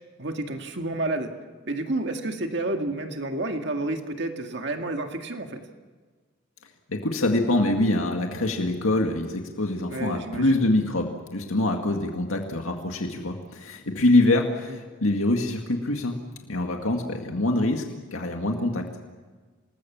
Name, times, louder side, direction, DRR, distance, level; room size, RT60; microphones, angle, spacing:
voice 1, 0.2-1.3 1.7-5.6 9.9-10.6 14.7-14.8, right 2 dB, 55° right, 4 dB, 1.9 m, -30 dB
voice 2, 6.9-16.2 16.5-17.8 18.1-18.9, left 2 dB, 85° left, 2 dB, 2.1 m, -24 dB
27.0 x 20.0 x 7.4 m, 1.4 s
head